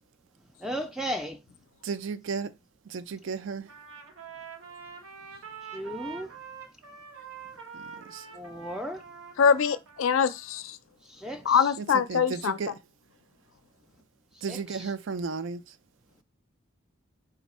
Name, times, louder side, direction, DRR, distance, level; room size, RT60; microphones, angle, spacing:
voice 1, 0.6-1.4 5.7-6.3 8.3-9.0 11.0-11.8 14.4-14.9, equal, 5° right, 0.3 m, -36 dB
voice 2, 1.8-2.5 2.9-3.7 7.7-8.3 11.8-12.7 14.4-15.6, right 5 dB, 70° right, 0.4 m, -34 dB
Trumpet, 3.7-10.6, right 6 dB, 90° right, 0.9 m, -45 dB
voice 3, 9.4-10.8 11.5-12.6, left 6 dB, 85° left, 0.4 m, -23 dB
4.3 x 2.4 x 4.1 m
head